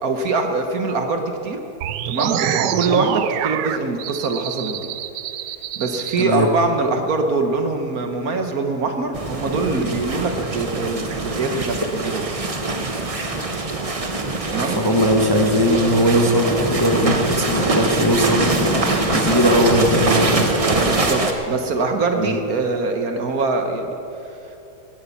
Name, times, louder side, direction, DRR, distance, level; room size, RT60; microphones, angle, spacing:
voice 1, 0.0-1.6 2.1-4.8 5.8-12.2 14.5-14.8 20.8-24.0, right 3 dB, 60° right, 5 dB, 1.5 m, -23 dB
sound 1, 1.8-6.2, right 10 dB, 90° right, 1.3 m, -26 dB
voice 2, 6.2-6.5 14.7-20.5 22.2-22.3, equal, 15° left, 1 dB, 1.2 m, -19 dB
sound 2, 9.1-21.3, right 2 dB, 25° right, 0.9 m, -23 dB
19.5 x 9.5 x 7.1 m, 2.9 s
omnidirectional pair, 1.8 m